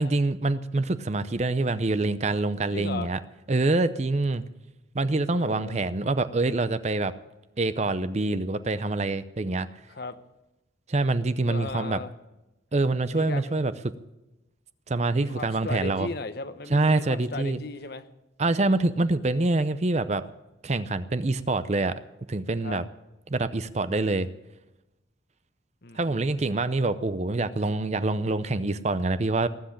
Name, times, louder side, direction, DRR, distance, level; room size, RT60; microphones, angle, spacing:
voice 1, 0.0-3.2 3.5-4.4 4.9-7.1 7.6-9.7 10.9-12.0 12.7-13.9 14.9-16.1 16.7-17.6 18.4-20.3 20.6-22.0 22.3-22.8 23.3-24.3 26.0-29.5, right 2 dB, 35° right, 13 dB, 0.6 m, -25 dB
voice 2, 2.7-3.1 5.3-5.9 9.9-10.2 11.4-12.1 13.1-13.5 15.1-18.1 22.6-22.8 25.8-26.6, left 3 dB, 55° left, 11 dB, 1.0 m, -37 dB
19.0 x 7.9 x 8.6 m, 0.98 s
head